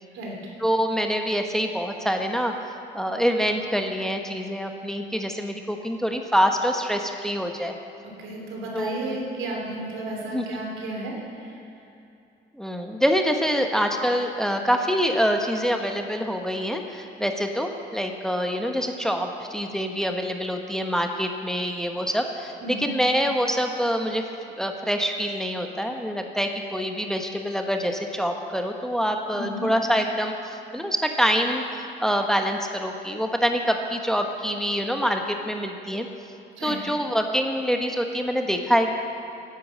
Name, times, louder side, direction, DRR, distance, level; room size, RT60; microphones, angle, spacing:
voice 1, 0.6-7.7 8.7-9.2 10.3-10.4 12.5-24.2 24.6-36.1 36.6-38.9, equal, 5° left, 4 dB, 1.0 m, -25 dB
voice 2, 8.2-11.6 22.6-22.9 29.3-29.7 36.6-36.8, right 1 dB, 85° right, -1 dB, 3.0 m, -33 dB
10.5 x 9.1 x 7.4 m, 2.6 s
cardioid pair, 90°, 20 cm